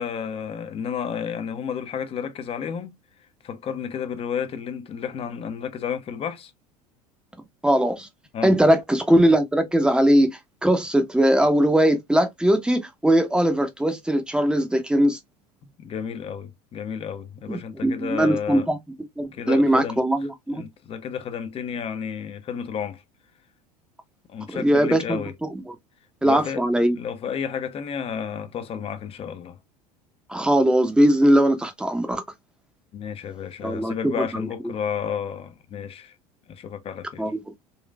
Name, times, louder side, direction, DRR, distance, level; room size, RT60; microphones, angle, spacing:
voice 1, 0.0-3.0 3.4-6.5 8.3-8.6 15.8-18.7 19.3-20.0 20.5-23.0 24.3-25.3 26.2-26.6 26.9-29.6 32.9-36.1 36.5-37.3, left 7 dB, 30° left, 0.6 m, -31 dB
voice 2, 7.6-8.1 8.4-15.2 17.5-18.8 19.2-20.6 24.5-25.7 26.2-27.0 30.3-32.2 33.6-34.2 37.2-37.4, right 1 dB, 5° right, 0.7 m, -20 dB
3.9 x 2.4 x 2.2 m
figure-of-eight pair, 75°, 20 cm